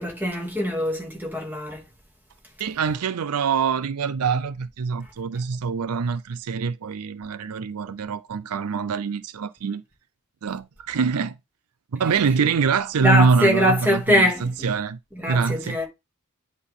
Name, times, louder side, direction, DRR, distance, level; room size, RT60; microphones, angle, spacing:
voice 1, 0.0-1.8 13.0-14.7 15.1-15.8, equal, 10° right, 2.6 m, -23 dB
voice 2, 2.6-9.8 10.4-11.4 11.9-15.0 15.3-15.8, right 5 dB, 85° right, 0.5 m, -24 dB
9.8 x 4.1 x 3.7 m
head